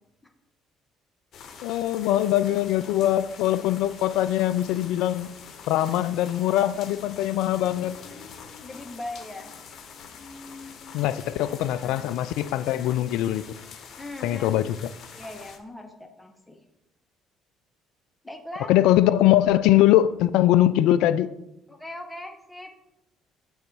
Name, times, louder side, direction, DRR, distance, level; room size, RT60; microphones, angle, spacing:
sound 1, 1.3-15.6, left 6 dB, 55° left, 1.0 m, -45 dB
voice 1, 1.6-5.3 5.7-7.9 10.9-13.4 14.2-14.8 18.7-21.3, left 13 dB, 70° left, 15 dB, 0.3 m, -22 dB
voice 2, 8.6-9.6 11.6-12.1 14.0-14.7 15.1-16.6 18.2-18.7 21.7-22.7, left 1 dB, 10° left, 5 dB, 1.3 m, -40 dB
6.9 x 4.1 x 6.1 m, 0.88 s
hypercardioid pair, 55°, 0 cm